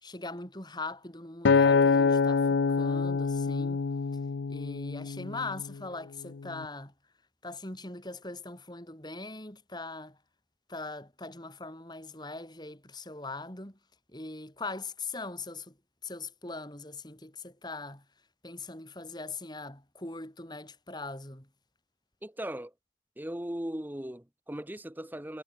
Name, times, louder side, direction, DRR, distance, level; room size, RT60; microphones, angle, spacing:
voice 1, 0.0-3.8 4.5-6.9 7.4-10.2 10.7-13.8 14.1-15.8 16.0-18.0 18.4-21.5, left 3 dB, 25° left, 4.7 m, -41 dB
Acoustic guitar, 1.4-5.8 6.4-6.6, left 5 dB, 75° left, 0.5 m, -26 dB
voice 2, 22.2-22.7 23.2-25.4, right 1 dB, 10° right, 0.8 m, -38 dB
head